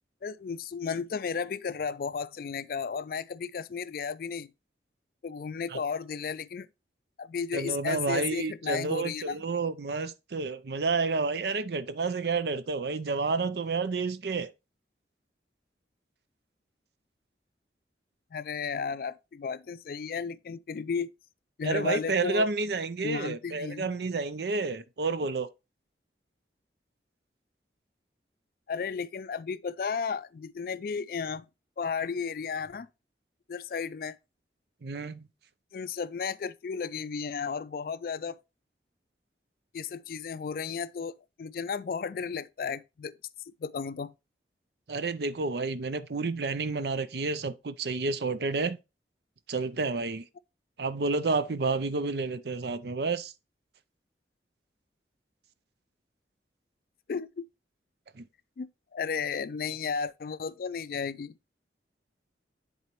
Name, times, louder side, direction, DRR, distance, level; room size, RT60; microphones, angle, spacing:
voice 1, 0.2-4.5 5.2-6.7 7.2-9.4 18.3-21.1 21.6-22.5 23.0-23.9 28.7-31.5 31.8-32.9 33.5-34.2 35.7-38.4 39.7-43.2 43.6-44.1 57.1-57.5 58.6-61.4, left 6 dB, 55° left, 0.3 m, -34 dB
voice 2, 7.5-14.5 21.6-25.5 34.8-35.3 44.9-48.8 49.5-50.3 50.8-53.3 58.2-58.3, right 4 dB, 70° right, 0.5 m, -30 dB
10.5 x 4.0 x 3.0 m
head